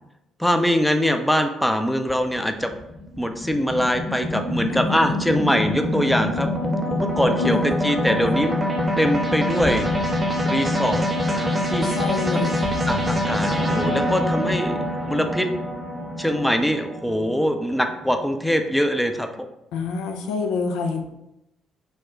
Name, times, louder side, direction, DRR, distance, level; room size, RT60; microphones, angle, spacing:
voice 1, 0.4-2.7 3.2-6.5 7.0-8.6 9.0-9.9 10.4-11.8 12.9-15.5 16.2-19.3, equal, 5° left, 6 dB, 0.5 m, -23 dB
sound 1, 2.1-18.5, left 1 dB, 25° right, 0.8 m, -25 dB
sound 2, 9.6-11.1 12.6-14.1, left 1 dB, 50° right, 0.8 m, -36 dB
voice 2, 11.8-12.7 19.7-21.0, left 4 dB, 70° left, 5 dB, 0.4 m, -26 dB
4.1 x 2.1 x 3.6 m, 0.88 s
figure-of-eight pair, 45°, 0 cm